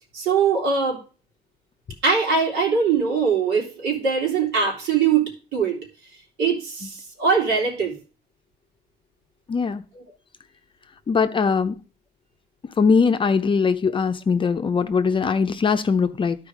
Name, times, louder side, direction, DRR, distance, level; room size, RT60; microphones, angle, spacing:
voice 1, 0.1-1.0 2.0-5.8 6.4-7.9 9.9-10.0 13.8-13.9, right 5 dB, 85° right, 3.1 m, -22 dB
voice 2, 9.5-9.8 11.1-11.8 12.8-16.4, left 5 dB, 30° left, 0.6 m, -21 dB
12.0 x 4.5 x 5.0 m
cardioid pair, 110°, 17 cm